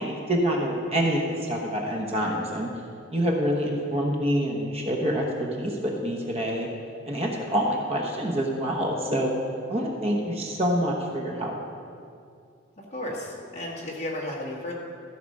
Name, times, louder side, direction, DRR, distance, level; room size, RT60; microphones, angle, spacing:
voice 1, 0.0-2.7 3.1-6.7 7.1-9.3 9.7-11.5, equal, 30° right, 0 dB, 1.0 m, -26 dB
voice 2, 12.8-14.7, left 1 dB, 30° left, -4 dB, 1.9 m, -34 dB
14.5 x 6.0 x 5.3 m, 2.3 s
head